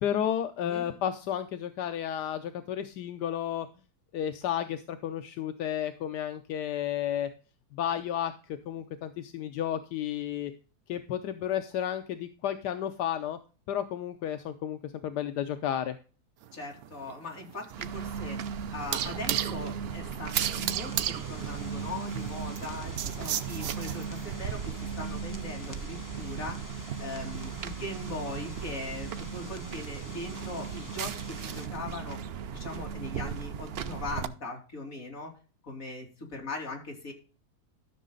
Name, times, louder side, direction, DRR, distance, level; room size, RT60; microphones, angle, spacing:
voice 1, 0.0-3.7 4.1-7.3 7.7-10.5 10.9-13.4 13.7-16.0, left 10 dB, 85° left, 8 dB, 1.3 m, -32 dB
sound 1, 16.4-24.3, right 11 dB, 85° right, 1.3 m, -35 dB
voice 2, 16.5-18.4 18.7-26.7 27.0-32.2 32.5-35.3 35.6-37.1, left 2 dB, 55° left, 0 dB, 3.4 m, -40 dB
sound 2, 17.7-34.3, right 7 dB, 65° right, 0.6 m, -37 dB
sound 3, 20.3-31.7, left 2 dB, 15° left, 0.7 m, -49 dB
13.5 x 6.4 x 3.8 m, 0.36 s
omnidirectional pair, 1.7 m